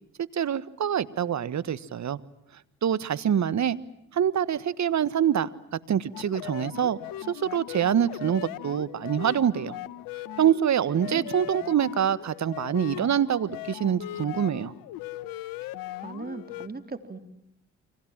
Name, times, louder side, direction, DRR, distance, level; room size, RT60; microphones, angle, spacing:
voice 1, 0.3-2.2 2.8-3.8 4.1-7.0 7.3-9.8 10.4-14.7, right 9 dB, 55° right, 16 dB, 1.5 m, -25 dB
sound 1, 6.1-16.7, left 14 dB, 85° left, 1.2 m, -39 dB
voice 2, 10.9-11.4 15.6-15.7 16.0-17.2, right 3 dB, 25° right, 8 dB, 3.9 m, -39 dB
30.0 x 25.5 x 7.5 m, 0.81 s
supercardioid pair, 55°, 34 cm